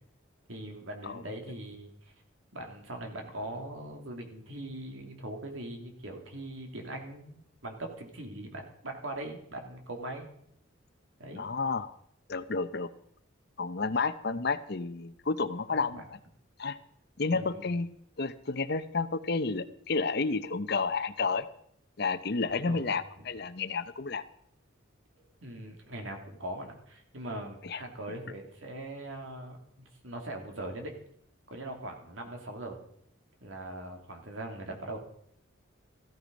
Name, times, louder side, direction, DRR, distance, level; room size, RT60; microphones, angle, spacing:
voice 1, 0.5-2.1 2.5-10.3 11.2-11.4 14.3-14.4 15.7-16.0 17.3-17.7 22.5-22.9 25.4-29.6 30.0-30.9 31.5-32.8 33.4-35.0, right 1 dB, 75° right, 3 dB, 2.8 m, -41 dB
voice 2, 11.4-11.9 12.3-12.9 13.6-16.0 16.6-16.8 17.2-17.9 18.2-21.5 22.0-24.2 27.6-27.8, left 4 dB, 50° left, 12 dB, 0.7 m, -31 dB
15.0 x 13.5 x 5.3 m, 0.68 s
head